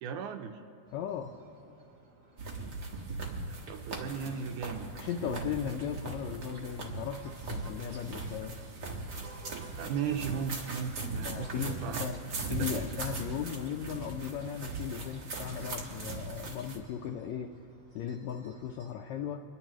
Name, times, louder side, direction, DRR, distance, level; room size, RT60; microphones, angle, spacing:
voice 1, 0.0-0.6 3.7-4.9 5.2-5.6 9.8-12.1 12.5-12.9, right 6 dB, 80° right, 5 dB, 2.0 m, -36 dB
sound 1, 0.8-18.9, right 2 dB, 30° right, 3.2 m, -58 dB
voice 2, 0.9-1.3 4.9-8.5 11.2-12.2 12.5-17.5 17.9-19.4, left 8 dB, 80° left, 3 dB, 1.6 m, -37 dB
sound 2, 2.4-16.8, right 3 dB, 45° right, 1.4 m, -39 dB
29.0 x 11.0 x 3.0 m, 3.0 s
omnidirectional pair, 3.6 m